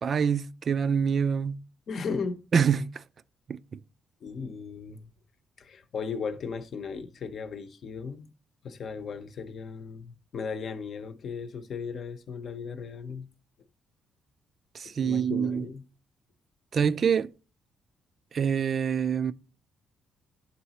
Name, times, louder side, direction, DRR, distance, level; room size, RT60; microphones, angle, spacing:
voice 1, 0.0-1.6 2.5-3.0 3.5-3.6 14.7-15.7 16.7-17.3 18.3-19.3, right 7 dB, 50° right, 0.3 m, -25 dB
voice 2, 1.9-2.4 4.2-5.1 5.6-8.3 8.6-13.3 14.8-15.8 16.8-16.9, left 5 dB, 55° left, 0.7 m, -36 dB
11.5 x 4.0 x 2.8 m
cardioid pair, 90°, 0 cm